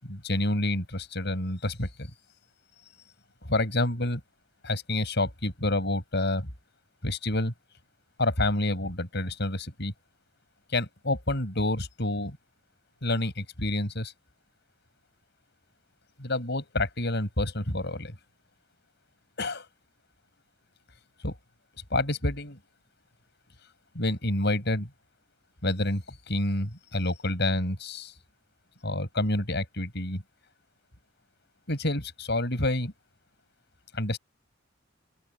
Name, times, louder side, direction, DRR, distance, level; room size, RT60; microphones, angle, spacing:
voice 1, 0.0-2.1 3.5-4.2 4.6-6.5 7.0-7.5 8.2-9.9 10.7-12.4 13.0-14.1 16.2-18.1 19.4-19.7 21.2-21.3 21.9-22.6 24.0-24.9 25.6-28.1 28.8-30.2 31.7-32.9 33.9-34.2, left 1 dB, 60° left, 7.2 m, -28 dB
open air
head